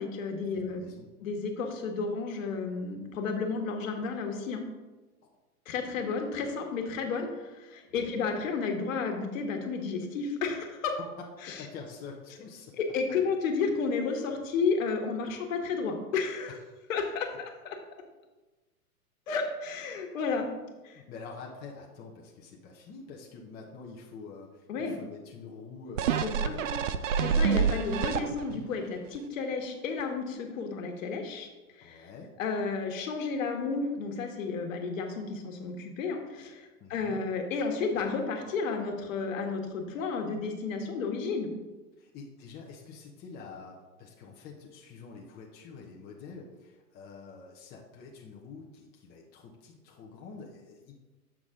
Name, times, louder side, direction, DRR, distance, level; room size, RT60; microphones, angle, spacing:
voice 1, 0.0-0.9 1.2-4.6 5.6-11.0 11.4-11.6 12.8-16.6 16.9-17.8 19.3-20.4 20.8-21.0 24.7-25.0 26.2-26.5 27.2-31.5 31.7-32.1 32.4-41.5, left 4 dB, 60° left, 3 dB, 1.5 m, -32 dB
voice 2, 0.5-1.1 7.9-8.1 11.6-12.7 16.5-16.8 20.4-26.9 27.3-27.4 31.8-32.3 36.8-37.2 42.0-50.9, left 4 dB, 20° left, -1 dB, 0.8 m, -47 dB
sound 1, 26.0-28.7 29.2-29.3, right 6 dB, 55° right, 0.6 m, -27 dB
8.2 x 6.0 x 3.7 m, 1.2 s
hypercardioid pair, 125°, 46 cm